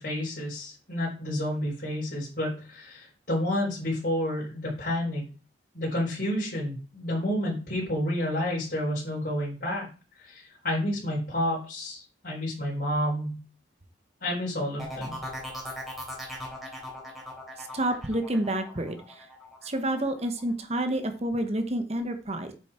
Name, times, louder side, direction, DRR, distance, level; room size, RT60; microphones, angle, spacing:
voice 1, 0.0-5.3 5.7-9.9 10.2-13.4 14.2-15.2, left 1 dB, 55° left, -7 dB, 4.2 m, -30 dB
sound 1, 14.8-20.4 20.8-21.3, equal, ahead, 3.6 m, -39 dB
voice 2, 17.6-19.3 19.6-22.5, right 1 dB, 35° right, 8 dB, 1.1 m, -29 dB
9.0 x 7.1 x 4.4 m, 0.35 s
head